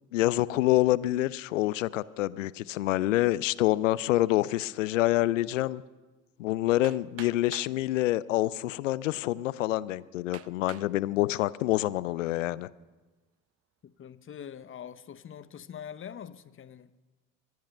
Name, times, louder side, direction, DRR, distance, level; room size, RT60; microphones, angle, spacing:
voice 1, 0.1-5.8 6.4-12.7, left 16 dB, 85° left, 19 dB, 0.5 m, -27 dB
Hammer, 6.8-7.8 8.7-8.8 9.4-9.5 10.3-10.9 11.5-12.0, right 12 dB, 40° right, 0.6 m, -47 dB
voice 2, 13.8-16.9, left 8 dB, 35° left, 14 dB, 0.8 m, -44 dB
23.0 x 10.5 x 5.5 m, 1.2 s
hypercardioid pair, 60°, 37 cm